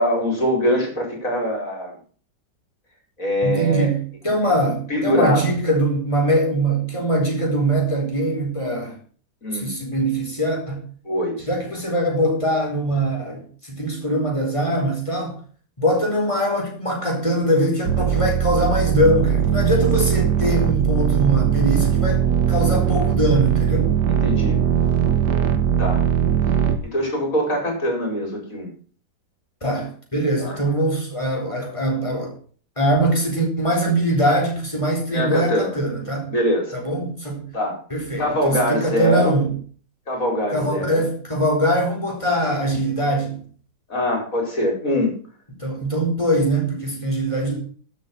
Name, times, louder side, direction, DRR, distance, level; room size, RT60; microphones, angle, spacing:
voice 1, 0.0-2.0 3.2-3.9 4.4-4.6 4.9-5.5 9.4-9.7 11.0-11.3 24.1-24.6 25.8-26.0 26.8-28.7 30.4-30.6 35.1-35.8 36.3-36.8 37.5-37.8 38.2-39.4 40.1-41.0 43.9-45.2, equal, 50° left, 5.0 m, -23 dB
voice 2, 3.4-8.9 9.6-10.8 11.5-15.4 15.8-23.9 29.6-32.3 32.8-36.3 36.7-37.4 37.9-39.5 40.5-43.4 45.6-47.6, right 1 dB, 15° left, 4.4 m, -22 dB
sound 1, 17.9-26.8, right 8 dB, 75° right, 1.8 m, -20 dB
12.5 x 7.9 x 5.9 m
omnidirectional pair, 1.8 m